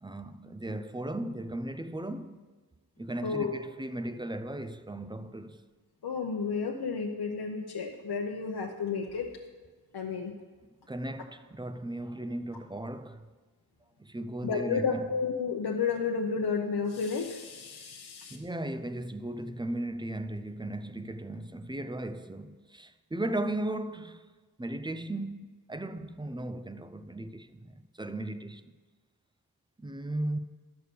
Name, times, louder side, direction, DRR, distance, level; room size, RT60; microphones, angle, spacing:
voice 1, 0.0-2.4 3.0-5.6 10.9-13.3 14.0-15.1 18.3-24.3 24.6-28.7 29.8-30.4, right 1 dB, 10° right, 0.4 m, -36 dB
voice 2, 3.2-3.6 6.0-9.3 9.9-10.3 14.4-18.4, left 5 dB, 75° left, 0.8 m, -31 dB
11.0 x 6.6 x 6.8 m
wide cardioid pair, 105°, 39 cm